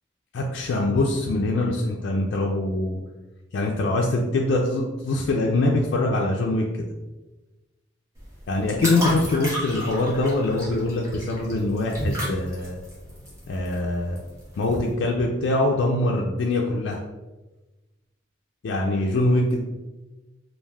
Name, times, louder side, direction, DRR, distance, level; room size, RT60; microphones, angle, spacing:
voice 1, 0.3-3.0 3.5-6.6 8.5-12.8 13.5-14.2 14.6-17.0 18.6-19.6, left 2 dB, 65° left, -1 dB, 0.3 m, -23 dB
sound 1, 8.2-14.9, equal, 15° right, 0.8 m, -33 dB
3.3 x 2.4 x 2.3 m, 1.1 s
head